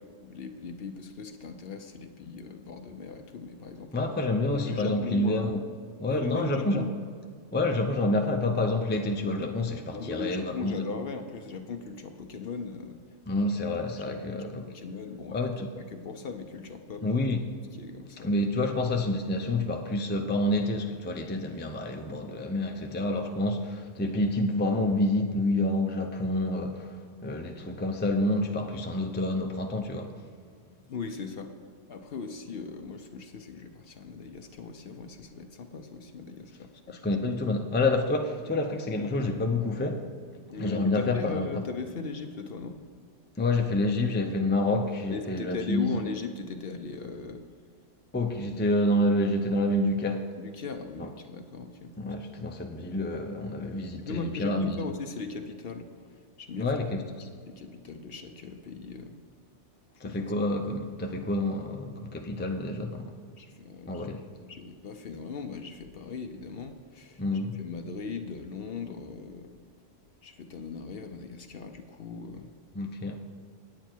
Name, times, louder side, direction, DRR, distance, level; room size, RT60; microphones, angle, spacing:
voice 1, 0.0-4.1 4.6-5.5 6.1-6.9 9.9-13.0 13.4-14.4 14.7-15.4 15.8-17.2 17.8-18.4 30.9-31.5 31.9-37.0 40.5-42.8 45.1-47.4 50.4-51.9 54.1-56.7 57.6-59.2 60.0-60.2 63.4-64.1 64.5-67.2 67.6-69.6 70.2-72.5, left 4 dB, 60° left, 0.9 m, -39 dB
voice 2, 3.9-5.6 6.0-6.8 7.5-10.7 13.3-14.7 15.3-15.7 17.0-17.4 18.2-30.1 36.9-40.1 40.6-41.6 43.4-45.9 48.1-50.3 51.0-51.1 52.0-54.7 56.5-57.3 60.0-63.1 63.9-64.2 67.2-67.6 72.8-73.2, left 2 dB, 15° left, 0.5 m, -28 dB
9.2 x 9.0 x 4.4 m
omnidirectional pair, 1.2 m